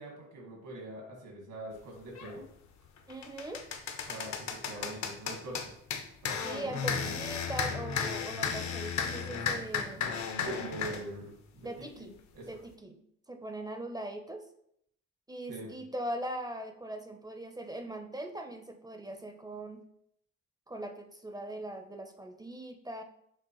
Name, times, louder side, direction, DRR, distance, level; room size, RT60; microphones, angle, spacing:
voice 1, 0.0-2.5 4.1-5.7 6.2-7.1 10.4-12.1 12.3-12.6 15.5-15.7, right 2 dB, 85° right, 0 dB, 1.6 m, -43 dB
sound 1, 2.1-2.3 2.8-11.0, left 6 dB, 65° left, 0.6 m, -34 dB
voice 2, 3.1-3.6 6.4-10.1 11.6-12.1 12.5-13.0 13.3-14.4 15.3-19.8 20.7-23.0, right 1 dB, 15° right, 6 dB, 0.4 m, -40 dB
6.1 x 2.4 x 2.9 m, 0.71 s
cardioid pair, 90°, 30 cm